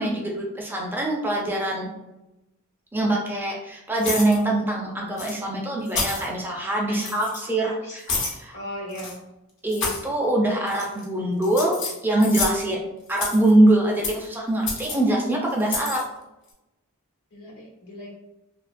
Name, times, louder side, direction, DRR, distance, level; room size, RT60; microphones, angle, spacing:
voice 1, 0.0-1.9 2.9-8.6 9.6-11.8 12.0-12.8 13.1-16.1, right 1 dB, 10° right, -2 dB, 0.4 m, -23 dB
sound 1, 4.0-4.4 5.2-5.3 5.9-6.3 6.9-7.4 8.1-8.4 8.9-9.1 9.7-10.0 10.7-11.0 11.4-12.6 13.1-13.5 14.0-14.2 14.7-14.9 15.6-16.0, left 3 dB, 55° left, 0.7 m, -29 dB
voice 2, 7.4-8.0 8.5-9.2 17.3-18.1, equal, 85° left, -4 dB, 1.0 m, -38 dB
2.7 x 2.1 x 2.4 m, 0.94 s
head